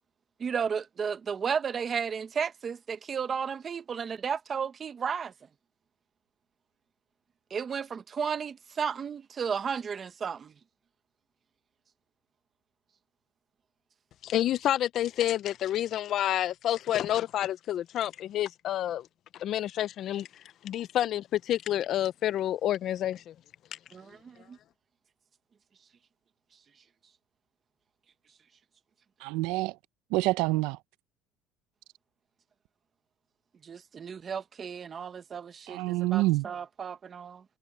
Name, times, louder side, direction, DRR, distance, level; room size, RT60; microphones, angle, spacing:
voice 1, 0.4-5.3 7.5-10.5 23.9-24.6 33.6-37.4, right 6 dB, 25° right, 0.8 m, -33 dB
voice 2, 14.2-19.1 19.4-20.3 20.6-23.3, left 12 dB, 40° left, 0.4 m, -29 dB
voice 3, 29.2-29.8 30.1-30.8 35.7-36.5, right 19 dB, 70° right, 0.6 m, -27 dB
cardioid pair, 170°, 0 cm